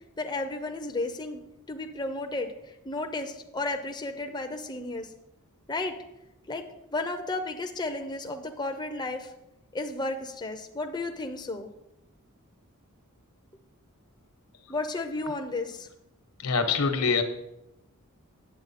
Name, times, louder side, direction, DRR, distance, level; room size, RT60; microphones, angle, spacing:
voice 1, 0.2-1.4 1.7-5.1 5.7-5.9 6.5-6.6 6.9-9.3 9.7-11.7 14.7-15.9, left 2 dB, 20° left, 4 dB, 0.6 m, -33 dB
voice 2, 16.4-17.2, left 5 dB, 75° left, 7 dB, 1.0 m, -24 dB
9.0 x 7.6 x 4.2 m, 0.88 s
head